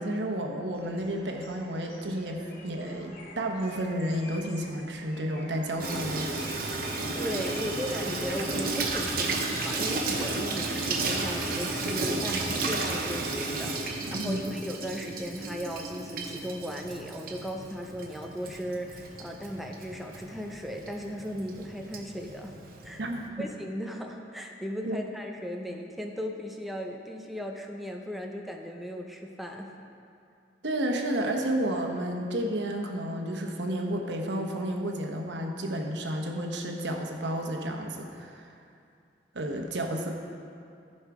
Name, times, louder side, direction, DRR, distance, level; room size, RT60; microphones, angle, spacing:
voice 1, 0.0-6.3 14.2-14.5 23.0-23.5 24.9-25.0 30.6-38.5 39.3-40.1, right 1 dB, 85° right, 2 dB, 1.0 m, -31 dB
sound 1, 0.7-11.1, left 1 dB, 50° left, 1.5 m, -46 dB
Water tap faucet / Sink (filling or washing), 5.8-23.3, right 3 dB, 55° right, 0.9 m, -33 dB
voice 2, 7.1-22.6 22.8-23.0 23.4-29.7, equal, ahead, 1 dB, 0.6 m, -37 dB
14.0 x 5.5 x 4.8 m, 2.5 s
head